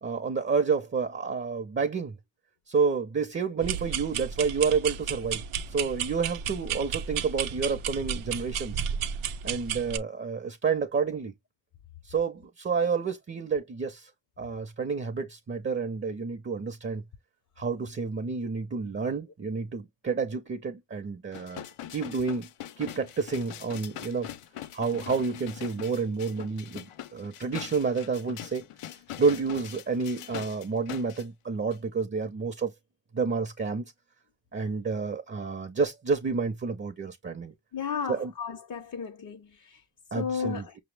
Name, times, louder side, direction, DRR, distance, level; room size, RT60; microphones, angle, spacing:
voice 1, 0.0-2.1 2.7-5.4 5.7-8.8 9.4-11.3 12.0-14.1 14.4-17.0 17.6-21.6 21.9-22.5 22.8-24.3 24.7-28.6 29.2-32.7 33.1-33.8 34.5-37.5 38.1-38.3 40.1-40.7, right 5 dB, 25° right, 0.5 m, -29 dB
sound 1, 3.6-10.0, right 7 dB, 75° right, 0.6 m, -33 dB
sound 2, 21.3-31.2 31.7-31.8, left 12 dB, 90° left, 0.6 m, -42 dB
voice 2, 37.7-39.8 40.2-40.7, left 7 dB, 40° left, 0.4 m, -34 dB
5.4 x 2.0 x 3.2 m
wide cardioid pair, 100°, 50 cm